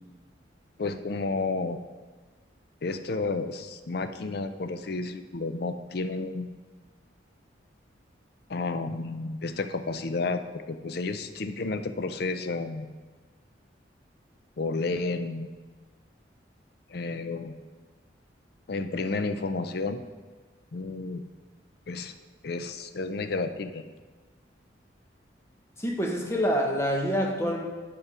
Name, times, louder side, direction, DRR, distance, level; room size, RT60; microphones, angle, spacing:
voice 1, 0.8-1.8 2.8-6.5 8.5-12.9 14.6-15.5 16.9-17.5 18.7-20.0 20.7-21.2 21.9-22.1 22.4-23.8, left 3 dB, 55° left, 9 dB, 0.5 m, -31 dB
voice 2, 25.8-27.6, equal, 15° left, 1 dB, 0.9 m, -26 dB
8.1 x 5.5 x 4.8 m, 1.4 s
head